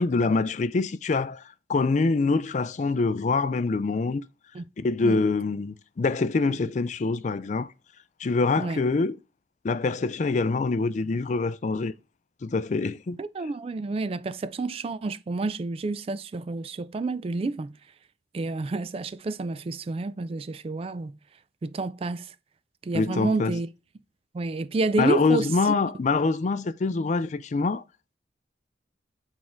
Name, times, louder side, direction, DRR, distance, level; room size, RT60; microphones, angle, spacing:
voice 1, 0.0-1.4 1.7-4.2 4.8-7.7 8.2-9.2 9.6-11.9 12.4-13.2 22.9-23.6 25.0-27.8, left 3 dB, 40° left, 0.4 m, -25 dB
voice 2, 13.2-17.8 18.3-21.2 21.6-22.3 22.8-23.7 24.3-25.5, right 3 dB, 30° right, 0.3 m, -29 dB
6.4 x 3.6 x 4.4 m
head